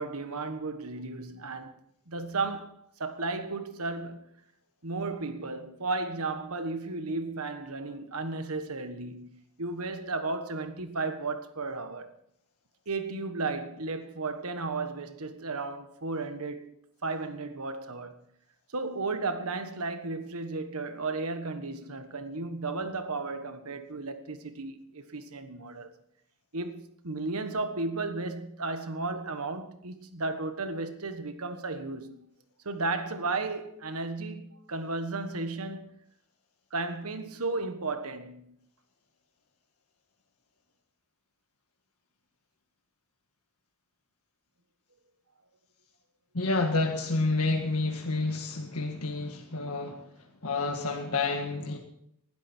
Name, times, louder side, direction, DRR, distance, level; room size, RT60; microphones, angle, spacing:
voice 1, 0.0-1.7 2.1-4.3 4.8-9.3 9.6-12.1 12.9-16.7 17.0-18.2 18.7-25.9 26.5-32.2 32.6-35.9 36.7-38.6, right 3 dB, 80° right, 1.5 m, -34 dB
voice 2, 46.3-50.1 50.4-51.8, left 3 dB, 90° left, 1.8 m, -29 dB
19.5 x 12.5 x 4.5 m
head